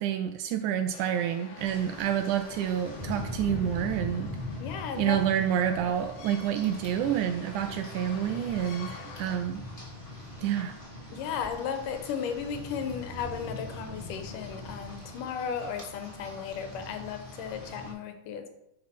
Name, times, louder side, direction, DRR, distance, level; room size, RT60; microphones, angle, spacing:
voice 1, 0.0-4.3 5.0-9.7 10.4-10.8, right 10 dB, 80° right, 7 dB, 2.0 m, -28 dB
sound 1, 0.9-9.4, left 5 dB, 75° left, 2.5 m, -48 dB
Rain, 1.6-17.9, left 2 dB, 20° left, 1.9 m, -41 dB
voice 2, 4.6-5.2 11.1-18.5, left 7 dB, 90° left, 7 dB, 2.6 m, -35 dB
9.7 x 4.9 x 5.7 m, 0.85 s
omnidirectional pair, 3.6 m